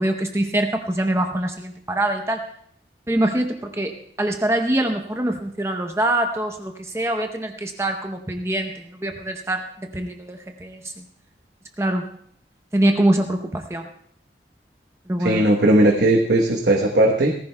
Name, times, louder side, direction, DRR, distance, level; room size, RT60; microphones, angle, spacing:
voice 1, 0.0-2.4 3.1-11.0 11.8-12.1 12.7-13.9 15.1-15.5, right 1 dB, 15° right, 4 dB, 0.7 m, -24 dB
voice 2, 15.2-17.3, right 1 dB, 75° right, 1 dB, 1.1 m, -17 dB
18.5 x 15.0 x 2.2 m, 0.64 s
head